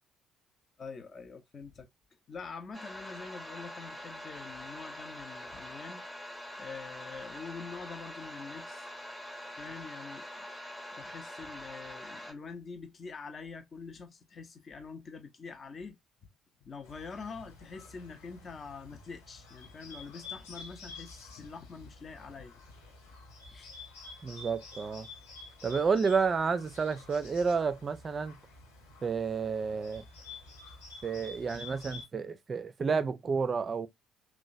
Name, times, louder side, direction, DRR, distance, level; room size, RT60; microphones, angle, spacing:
voice 1, 0.8-1.9 2.3-6.0 6.6-8.9 9.6-10.6 10.9-16.0 16.6-22.6 23.5-23.7, left 5 dB, 35° left, 0.7 m, -45 dB
sound 1, 2.7-12.3, left 1 dB, 10° left, 0.9 m, -44 dB
Bird, 16.8-32.0, left 3 dB, 75° left, 1.4 m, -50 dB
voice 2, 24.2-25.1 25.6-28.3 29.0-30.0 31.0-33.9, right 5 dB, 35° right, 0.4 m, -30 dB
2.9 x 2.1 x 2.5 m
figure-of-eight pair, 50°, 0 cm